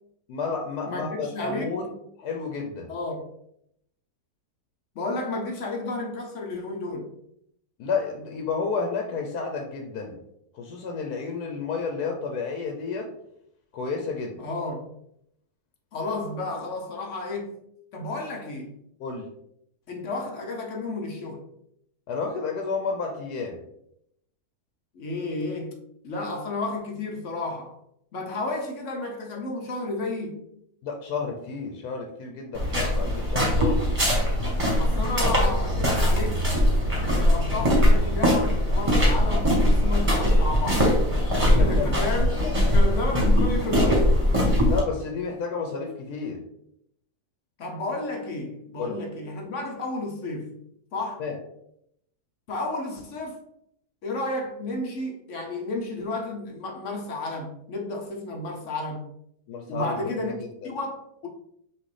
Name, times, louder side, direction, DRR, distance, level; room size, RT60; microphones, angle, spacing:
voice 1, 0.3-2.9 7.8-10.2 10.5-13.1 13.7-14.4 19.0-19.3 22.1-23.6 30.8-33.8 41.6-42.3 44.6-46.4 48.8-49.0 51.2-51.3 59.5-60.5, left 4 dB, 85° left, 1.2 m, -31 dB
voice 2, 0.8-1.7 2.9-3.3 4.9-7.1 14.4-14.9 15.9-17.6 17.9-18.7 19.9-21.4 24.9-25.8 26.0-27.8 28.1-30.5 34.8-36.4 36.9-40.9 41.6-42.4 42.7-44.1 47.6-50.6 50.9-51.3 52.5-53.4 54.0-59.0 59.7-60.4 60.6-61.3, left 2 dB, 60° left, 1.0 m, -32 dB
sound 1, 32.5-44.8, equal, 20° right, 1.1 m, -21 dB
5.9 x 2.5 x 3.2 m
omnidirectional pair, 1.7 m